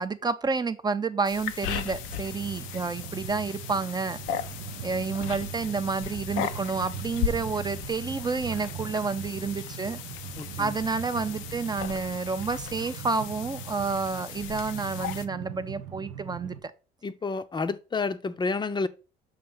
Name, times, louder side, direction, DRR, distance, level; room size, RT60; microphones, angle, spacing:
voice 1, 0.0-4.2 4.8-10.0 10.6-16.7, right 4 dB, 20° right, 0.5 m, -30 dB
sound 1, 1.2-15.3, left 10 dB, 85° left, 0.5 m, -37 dB
Train, 1.4-16.6, right 8 dB, 85° right, 0.7 m, -40 dB
voice 2, 10.4-10.7 17.0-18.9, left 4 dB, 25° left, 0.6 m, -30 dB
6.6 x 2.6 x 5.5 m
cardioid pair, 90°, 20 cm